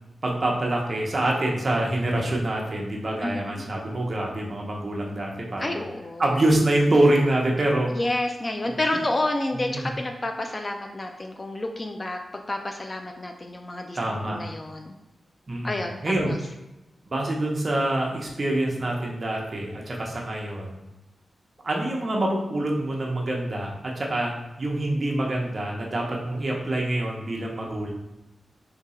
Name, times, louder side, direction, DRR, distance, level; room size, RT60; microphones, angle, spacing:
voice 1, 0.2-5.8 6.2-7.9 9.5-9.9 14.0-14.4 15.5-16.4 17.1-20.8 21.6-27.9, right 1 dB, 35° right, -1 dB, 0.8 m, -25 dB
voice 2, 3.2-3.6 5.6-6.4 7.9-14.0 14.3-14.9 15.6-16.4, left 2 dB, 25° left, 4 dB, 0.3 m, -30 dB
3.6 x 2.8 x 4.2 m, 0.97 s
wide cardioid pair, 150°, 0 cm